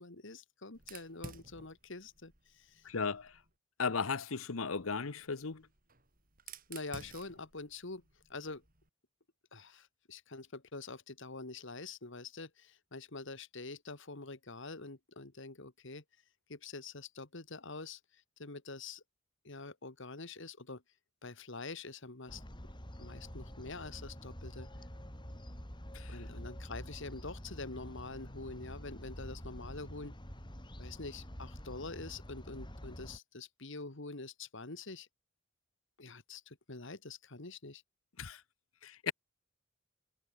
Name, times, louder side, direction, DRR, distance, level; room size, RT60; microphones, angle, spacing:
voice 1, 0.0-2.8 6.7-8.0 8.3-8.6 9.5-16.0 16.5-19.0 19.4-20.8 21.2-22.4 23.0-24.7 26.1-30.2 30.8-35.1 36.0-37.8, left 3 dB, 60° left, 2.0 m, -46 dB
Fire, 0.7-3.5 4.7-8.9, right 4 dB, 40° right, 6.8 m, -54 dB
voice 2, 2.8-3.3 3.8-5.7 25.9-26.2 38.2-38.4 38.8-39.1, left 5 dB, 75° left, 1.0 m, -36 dB
sound 1, 22.3-33.2, equal, 20° left, 4.6 m, -47 dB
head